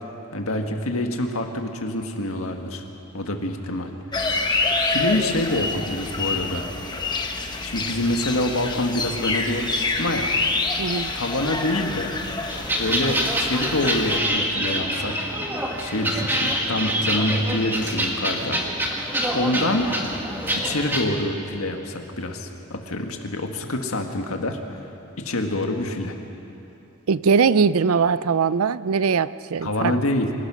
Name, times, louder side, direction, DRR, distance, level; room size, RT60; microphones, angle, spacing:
voice 1, 0.3-2.8 3.1-3.9 4.9-6.7 7.6-10.3 11.1-12.2 12.8-15.3 15.7-18.6 19.3-19.9 20.6-24.6 25.2-26.1 29.6-30.3, left 1 dB, 80° left, 4 dB, 1.8 m, -26 dB
sound 1, 4.1-14.2, left 3 dB, 20° left, 1.1 m, -27 dB
voice 2, 10.8-11.1 27.1-30.0, right 5 dB, 85° right, 16 dB, 0.5 m, -21 dB
sound 2, 12.5-21.0, right 1 dB, 10° right, 1.8 m, -26 dB
26.5 x 15.5 x 6.3 m, 2.8 s
head